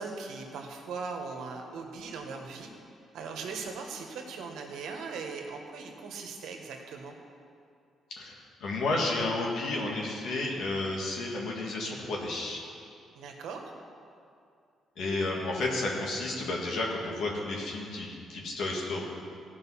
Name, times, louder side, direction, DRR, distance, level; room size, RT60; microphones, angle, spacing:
voice 1, 0.0-2.7 3.1-7.2 13.1-13.6, right 4 dB, 80° right, 3 dB, 1.3 m, -39 dB
voice 2, 8.1-12.6 15.0-19.0, left 2 dB, 75° left, -2 dB, 1.8 m, -32 dB
15.0 x 5.3 x 5.6 m, 2.4 s
cardioid pair, 90°, 0 cm